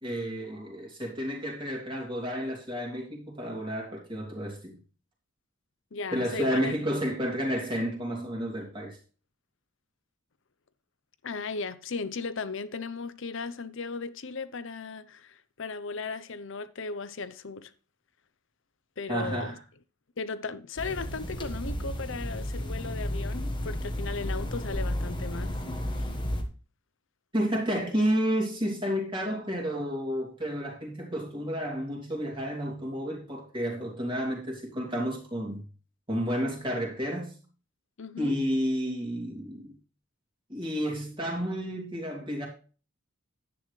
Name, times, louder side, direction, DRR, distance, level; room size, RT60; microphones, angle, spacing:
voice 1, 0.0-4.8 6.1-9.0 19.1-19.6 27.3-35.6 36.1-37.3 38.2-39.7 40.5-42.5, equal, 25° right, 2.8 m, -31 dB
voice 2, 5.9-6.8 11.2-17.7 19.0-19.6 20.2-25.5 25.9-26.1 38.0-38.4, left 4 dB, 60° left, 0.7 m, -36 dB
sound 1, 20.8-26.4, left 1 dB, 20° left, 1.4 m, -32 dB
10.5 x 9.2 x 3.2 m
head